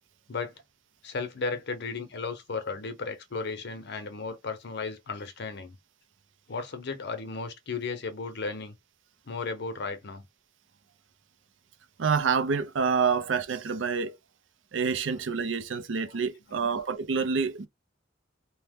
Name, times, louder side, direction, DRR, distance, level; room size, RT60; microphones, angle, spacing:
voice 1, 1.0-5.8 6.5-8.7 9.3-10.2 16.6-16.8, left 4 dB, 60° left, 0.7 m, -35 dB
voice 2, 12.0-14.2 14.7-17.7, right 5 dB, 85° right, 0.5 m, -27 dB
2.8 x 2.1 x 3.4 m
head